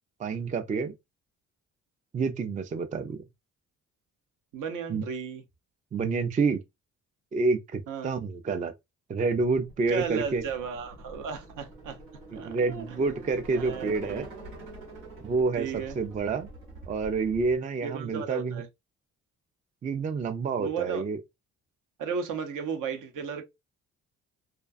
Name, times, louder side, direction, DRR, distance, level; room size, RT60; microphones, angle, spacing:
voice 1, 0.2-0.9 2.1-3.2 4.9-5.0 5.9-6.6 7.3-8.7 9.1-10.4 12.3-14.3 15.2-15.7 16.0-16.5 16.9-18.6 19.8-21.2, right 4 dB, 25° right, 0.4 m, -28 dB
voice 2, 4.5-5.4 7.9-8.2 9.9-12.0 12.3-12.8 13.5-14.2 15.5-16.0 17.8-18.7 20.6-21.0 22.0-23.4, right 6 dB, 60° right, 0.7 m, -34 dB
sound 1, 9.5-17.6, right 2 dB, 85° right, 1.2 m, -46 dB
2.4 x 2.2 x 2.4 m
supercardioid pair, 55°, 35 cm